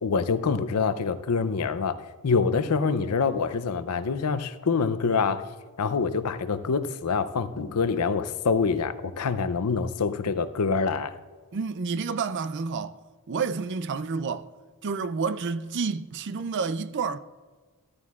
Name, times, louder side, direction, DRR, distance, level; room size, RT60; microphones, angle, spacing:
voice 1, 0.0-2.0 2.2-5.5 5.8-11.2, left 5 dB, 90° left, 0.6 m, -26 dB
voice 2, 11.5-13.0 13.3-14.5 14.8-17.2, right 5 dB, 55° right, 0.5 m, -29 dB
13.5 x 13.0 x 2.4 m
head